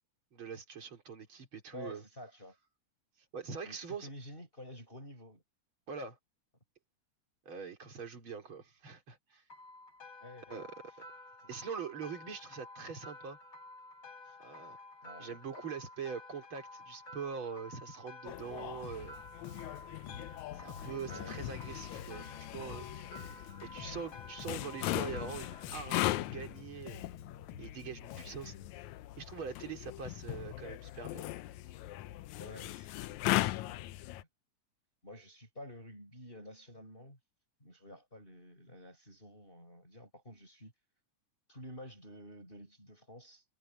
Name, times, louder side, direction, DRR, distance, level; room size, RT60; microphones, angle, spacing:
voice 1, 0.3-2.0 3.3-4.1 5.9-6.2 7.5-9.4 10.5-10.7 11.5-13.4 14.4-14.8 15.2-19.2 20.5-22.9 23.6-27.1 27.6-28.5 29.2-31.3, right 6 dB, 40° right, 4.4 m, -43 dB
voice 2, 1.7-2.6 3.6-5.4 10.2-10.7 14.2-14.4 15.0-15.4 21.1-21.5 32.3-33.8 35.0-37.2 37.6-40.7 41.5-43.4, left 1 dB, 15° left, 6.4 m, -50 dB
sound 1, 9.5-25.6, left 2 dB, 35° left, 4.4 m, -52 dB
sound 2, 18.3-34.2, left 16 dB, 80° left, 2.0 m, -39 dB
Bass guitar, 18.8-19.2 19.4-24.1 24.4-28.7, left 8 dB, 65° left, 1.4 m, -50 dB
omnidirectional pair, 3.5 m